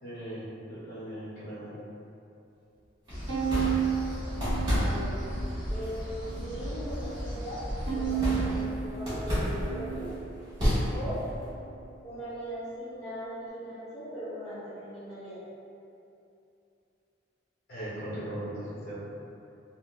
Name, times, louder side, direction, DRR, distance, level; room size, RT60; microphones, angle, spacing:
voice 1, 0.0-1.8 17.7-19.0, right 1 dB, 50° left, -12 dB, 0.9 m, -38 dB
sound 1, 3.1-8.6, equal, 10° right, 1.3 m, -37 dB
sound 2, 3.1-11.5, equal, 25° right, 1.3 m, -32 dB
Bowed string instrument, 3.3-5.7 6.1-6.9 7.9-10.4, right 8 dB, 85° right, 0.7 m, -33 dB
voice 2, 4.8-5.2 5.7-10.1 10.9-11.3 12.0-15.4, equal, 10° left, -16 dB, 1.2 m, -39 dB
3.7 x 2.3 x 2.4 m, 2.7 s
head